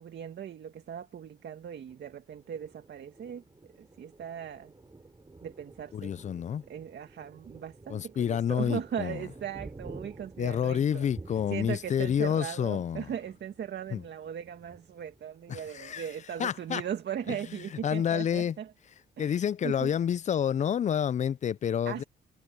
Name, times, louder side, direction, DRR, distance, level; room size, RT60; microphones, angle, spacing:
voice 1, 0.0-4.7 5.4-6.2 6.7-11.1 11.5-18.7 19.2-20.0 21.9-22.0, right 9 dB, 60° right, 2.1 m, -38 dB
Thunder, 1.8-16.2 16.7-16.8 17.1-17.7, right 3 dB, 20° right, 6.4 m, -51 dB
voice 2, 5.9-6.6 7.9-9.2 10.4-13.1 13.9-14.0 15.5-16.1 16.4-16.8 17.3-17.4 17.8-18.6 19.2-22.0, left 8 dB, 35° left, 0.4 m, -29 dB
cardioid pair, 90°, 20 cm